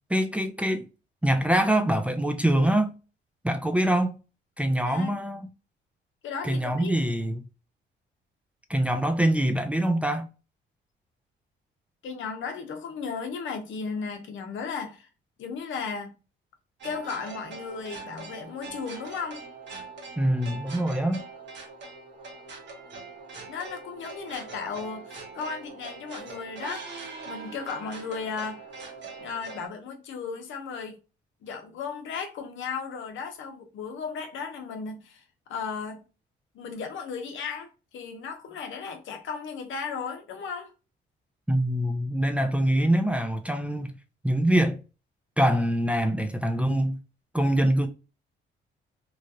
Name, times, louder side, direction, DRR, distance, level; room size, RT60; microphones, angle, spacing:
voice 1, 0.1-0.9 1.2-3.0 3.4-4.2 4.6-5.5 6.4-7.4 8.7-10.3 20.2-21.2 41.5-44.0 44.2-44.8 45.4-47.0 47.3-47.9, right 1 dB, 5° right, 0.4 m, -24 dB
voice 2, 6.2-6.9 12.0-15.1 15.4-16.1 16.8-19.4 23.5-28.6 29.2-31.0 31.4-35.2 35.5-36.0 36.5-40.7, left 5 dB, 75° left, 0.8 m, -35 dB
sound 1, 16.8-29.7, right 4 dB, 60° right, 1.1 m, -42 dB
3.1 x 2.4 x 2.7 m
cardioid pair, 90°, 20 cm